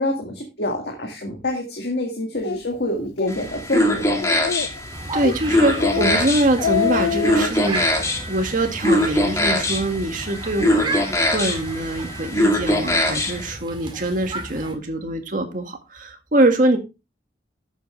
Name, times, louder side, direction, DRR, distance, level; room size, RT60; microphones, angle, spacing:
voice 1, 0.0-4.2, left 1 dB, 65° left, 1.9 m, -26 dB
Speech, 2.4-2.6 3.0-3.3 3.7-3.8 4.2-4.8 5.2-5.4 5.7-6.2 6.5-7.5, left 7 dB, 85° left, 0.4 m, -24 dB
sound 1, 3.3-13.5, left 1 dB, 15° left, 2.0 m, -23 dB
sound 2, 4.9-14.7, right 2 dB, 30° right, 2.0 m, -34 dB
voice 2, 5.1-7.9 8.3-11.0 11.3-16.8, right 1 dB, 50° right, 1.8 m, -23 dB
11.5 x 7.8 x 3.2 m
head